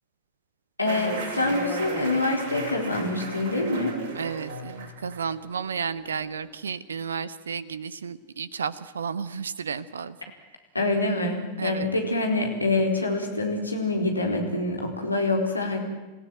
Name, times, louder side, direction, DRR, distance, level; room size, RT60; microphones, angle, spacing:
voice 1, 0.8-4.0 10.7-15.8, left 2 dB, 85° left, 2 dB, 4.3 m, -26 dB
sound 1, 0.8-6.5, right 4 dB, 50° right, 6.3 m, -36 dB
voice 2, 4.1-10.2 11.6-11.9, right 6 dB, 70° right, 18 dB, 0.8 m, -32 dB
27.5 x 16.5 x 9.1 m, 1.2 s
figure-of-eight pair, 90°, 0 cm